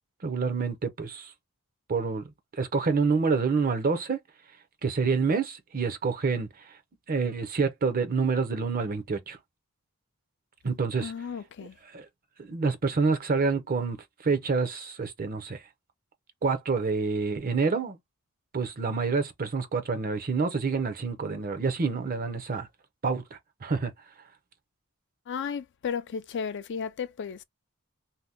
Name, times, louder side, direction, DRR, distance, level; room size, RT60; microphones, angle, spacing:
voice 1, 0.2-1.3 1.9-2.2 2.5-4.2 4.8-6.8 7.1-9.4 10.6-11.1 11.9-12.1 12.4-15.6 16.4-18.0 18.5-22.7 23.0-23.9, right 4 dB, 40° right, 0.6 m, -27 dB
voice 2, 11.0-11.8 25.3-27.4, left 6 dB, 55° left, 0.4 m, -34 dB
2.7 x 2.2 x 3.4 m
head